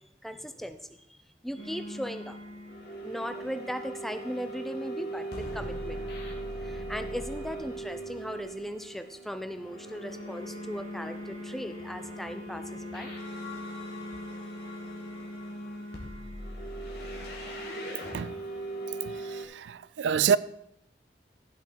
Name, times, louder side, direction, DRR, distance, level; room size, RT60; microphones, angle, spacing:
voice 1, 0.2-0.8 1.1-1.2 1.4-2.4 3.0-6.0 6.6-13.1, equal, ahead, 0.5 m, -38 dB
sound 1, 1.6-19.4, right 1 dB, 65° left, 2.5 m, -39 dB
voice 2, 19.0-20.4, right 7 dB, 85° right, 0.4 m, -27 dB
15.5 x 6.0 x 4.5 m
head